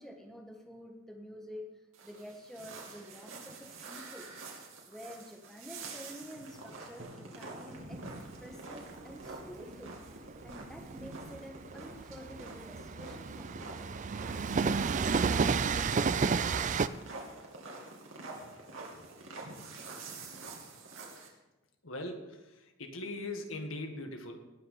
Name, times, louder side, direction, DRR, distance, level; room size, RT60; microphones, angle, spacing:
voice 1, 0.0-1.7 2.0-4.3 4.9-8.0 8.4-9.9 10.4-13.8, equal, ahead, 2 dB, 1.5 m, -49 dB
sound 1, 1.9-21.3, right 3 dB, 90° right, 2.6 m, -47 dB
Drum, 7.0-10.7, right 1 dB, 65° right, 1.7 m, -58 dB
Train, 7.8-16.9, right 5 dB, 40° right, 0.4 m, -32 dB
voice 2, 21.8-24.4, left 2 dB, 85° left, 4 dB, 1.7 m, -40 dB
18.5 x 6.5 x 5.6 m, 1.1 s
head